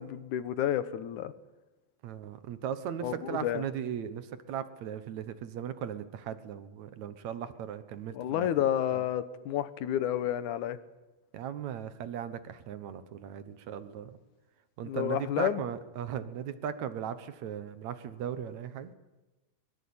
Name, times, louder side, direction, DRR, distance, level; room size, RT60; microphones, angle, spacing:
voice 1, 0.0-1.3 3.0-3.6 8.1-10.8 14.8-15.6, left 11 dB, 70° left, 14 dB, 2.2 m, -30 dB
voice 2, 2.0-8.5 8.9-9.0 11.3-14.2 14.8-18.9, right 9 dB, 65° right, 12 dB, 2.1 m, -37 dB
22.5 x 22.0 x 8.7 m, 1.1 s
omnidirectional pair, 4.1 m